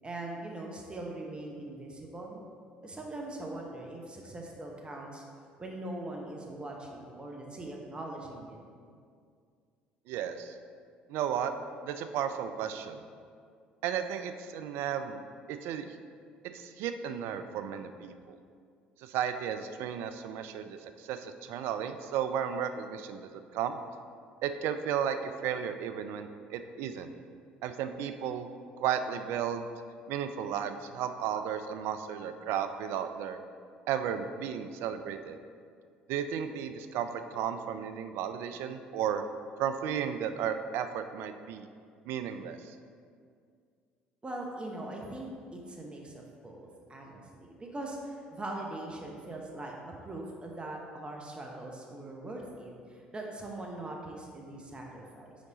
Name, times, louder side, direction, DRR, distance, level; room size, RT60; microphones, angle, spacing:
voice 1, 0.0-2.4 2.8-5.2 5.6-8.6 44.2-55.3, right 2 dB, 20° right, -1 dB, 0.9 m, -41 dB
voice 2, 10.1-10.5 11.1-11.5 11.8-13.0 13.8-15.2 15.5-15.9 16.5-18.4 19.0-23.8 24.4-27.1 27.6-28.5 28.8-29.7 30.1-33.4 33.9-35.4 36.1-39.2 39.6-41.7 42.0-42.8, right 8 dB, 65° right, 9 dB, 0.4 m, -34 dB
5.2 x 4.7 x 3.9 m, 2.2 s
hypercardioid pair, 55°, 4 cm